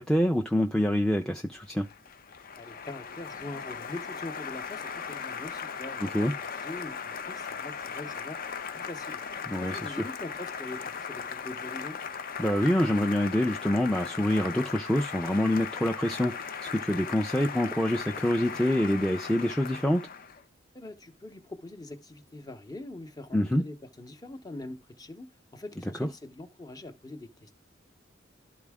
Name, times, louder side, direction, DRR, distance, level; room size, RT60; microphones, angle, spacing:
voice 1, 0.0-1.9 6.0-6.3 9.5-10.1 12.4-16.3 16.7-20.1 23.3-23.6 26.0-26.1, left 1 dB, 5° left, 0.5 m, -26 dB
Applause, 1.5-20.4, left 6 dB, 50° left, 0.6 m, -38 dB
voice 2, 2.6-6.0 6.6-8.4 8.8-9.2 9.6-12.0 20.7-27.5, left 2 dB, 20° left, 0.9 m, -43 dB
12.0 x 4.1 x 3.5 m
head